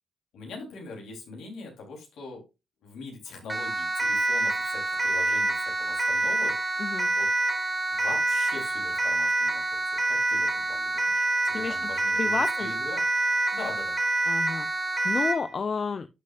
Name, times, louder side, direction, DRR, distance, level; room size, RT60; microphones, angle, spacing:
voice 1, 0.3-2.4 2.8-6.5 7.1-7.3 7.9-9.8 10.1-13.0 13.5-14.0, left 3 dB, 75° left, 0 dB, 3.7 m, -42 dB
Siren, 3.5-15.5, right 2 dB, 25° right, 2.1 m, -26 dB
voice 2, 6.8-7.1 11.5-12.7 14.3-16.1, left 5 dB, 50° left, 11 dB, 0.6 m, -32 dB
11.0 x 6.2 x 2.5 m, 0.26 s
hypercardioid pair, 40°, 0 cm